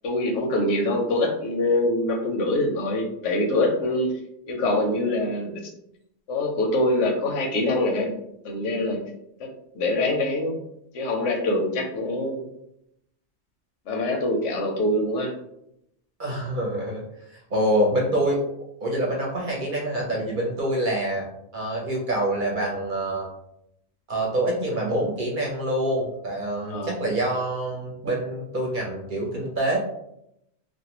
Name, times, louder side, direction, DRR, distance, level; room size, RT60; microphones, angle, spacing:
voice 1, 0.0-4.1 4.5-5.5 6.3-8.1 8.4-9.0 9.4-9.5 9.7-10.6 10.9-12.4 13.9-15.3 26.7-26.9, left 1 dB, 85° left, 1 dB, 1.0 m, -24 dB
voice 2, 16.2-17.0 17.3-18.4 18.8-21.3 21.5-23.3 24.1-29.8, right 1 dB, 50° right, -2 dB, 0.7 m, -26 dB
2.5 x 2.1 x 2.8 m, 0.78 s
omnidirectional pair, 1.2 m